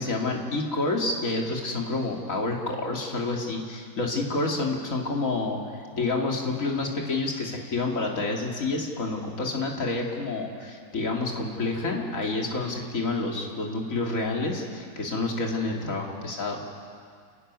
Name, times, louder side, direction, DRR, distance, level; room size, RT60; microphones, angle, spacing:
voice 1, 0.0-5.6 5.9-16.6, left 3 dB, 45° left, 0 dB, 2.8 m, -28 dB
30.0 x 11.5 x 9.5 m, 2.1 s
omnidirectional pair, 2.0 m